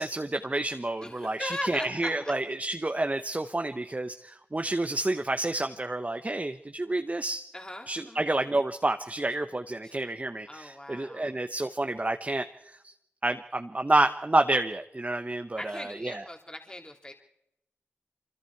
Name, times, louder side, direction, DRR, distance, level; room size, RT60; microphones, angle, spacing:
voice 1, 0.0-7.5 7.9-12.9 13.2-16.2, right 2 dB, 30° right, 7 dB, 1.0 m, -29 dB
voice 2, 1.0-2.3 7.5-8.2 9.8-10.0 10.5-11.3 15.6-17.1, left 1 dB, 20° left, 2 dB, 3.0 m, -39 dB
25.0 x 24.5 x 4.7 m, 0.79 s
cardioid pair, 40°, 5 cm